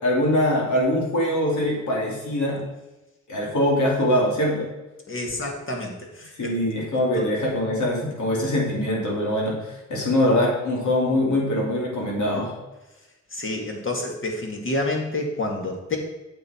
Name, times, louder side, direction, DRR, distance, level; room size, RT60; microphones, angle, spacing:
voice 1, 0.0-2.6 3.3-4.6 6.4-9.5 9.9-12.5, left 1 dB, 85° left, -2 dB, 3.0 m, -23 dB
voice 2, 5.1-6.6 6.9-7.2 13.3-16.0, left 2 dB, 45° left, 1 dB, 2.1 m, -29 dB
8.5 x 7.7 x 4.5 m, 1.0 s
wide cardioid pair, 110°, 29 cm